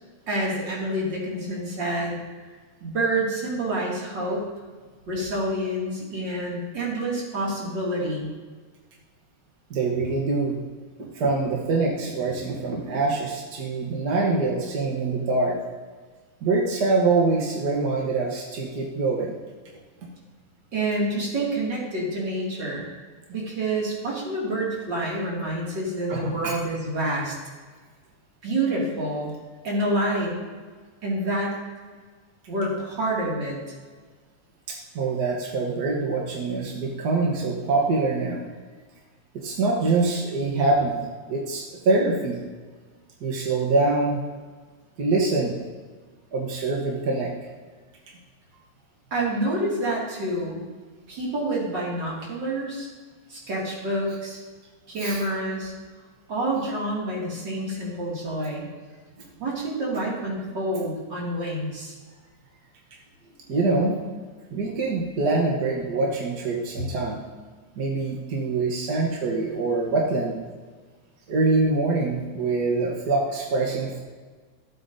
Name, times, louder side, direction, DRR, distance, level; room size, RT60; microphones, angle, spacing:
voice 1, 0.3-2.2 2.8-4.5 5.1-8.3 20.7-22.9 23.3-27.4 28.4-29.3 29.6-30.3 31.0-31.6 32.5-33.6 49.1-50.6 51.1-52.9 53.3-54.4 54.9-55.7 56.3-58.7 59.4-61.9, right 1 dB, 40° right, -4 dB, 2.9 m, -27 dB
voice 2, 9.7-10.6 11.1-15.6 16.4-19.3 26.1-26.6 34.7-38.4 39.3-41.0 41.3-42.4 43.2-44.2 45.0-45.6 46.3-47.3 55.0-55.2 63.5-64.0 64.5-67.2 67.8-70.4 71.3-74.0, right 3 dB, 60° right, -1 dB, 1.1 m, -24 dB
14.0 x 8.1 x 2.7 m, 1.4 s
omnidirectional pair, 3.4 m